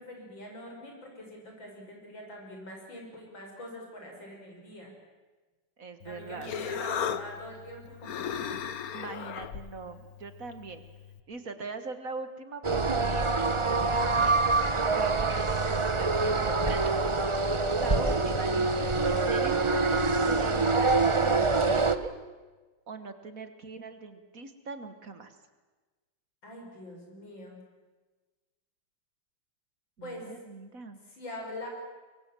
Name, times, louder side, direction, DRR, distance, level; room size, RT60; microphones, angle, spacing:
voice 1, 0.0-4.9 6.0-8.4 17.4-17.9 26.4-27.6 30.0-30.3 31.1-31.7, left 1 dB, 85° left, 0 dB, 7.0 m, -44 dB
voice 2, 5.8-6.5 8.9-10.8 11.3-14.5 14.9-18.9 19.3-22.1 22.9-25.3 30.0-31.0, right 4 dB, 50° right, 9 dB, 1.8 m, -41 dB
Human voice, 6.0-11.2, left 8 dB, 55° left, 1.3 m, -37 dB
sound 1, 12.6-21.9, right 3 dB, 25° right, 0.6 m, -25 dB
24.0 x 23.0 x 7.6 m, 1.3 s
omnidirectional pair, 2.0 m